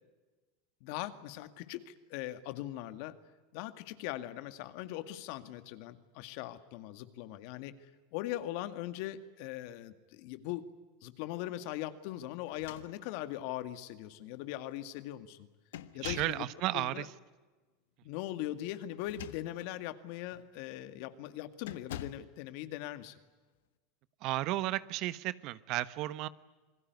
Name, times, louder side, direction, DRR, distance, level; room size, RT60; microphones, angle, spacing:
voice 1, 0.8-3.1 3.5-7.7 8.1-10.6 11.0-15.5 15.9-16.5 16.7-17.0 18.0-23.2, left 14 dB, 65° left, 11 dB, 2.0 m, -40 dB
sound 1, 12.5-13.4 14.2-14.3 14.7-15.1 15.7-16.5 18.9-19.8 20.3-20.5 21.6-22.3, left 11 dB, 80° left, 1.5 m, -46 dB
voice 2, 16.0-17.1 24.2-26.3, right 16 dB, 55° right, 16 dB, 1.1 m, -33 dB
27.5 x 20.0 x 9.5 m, 1.3 s
supercardioid pair, 115°, 0 cm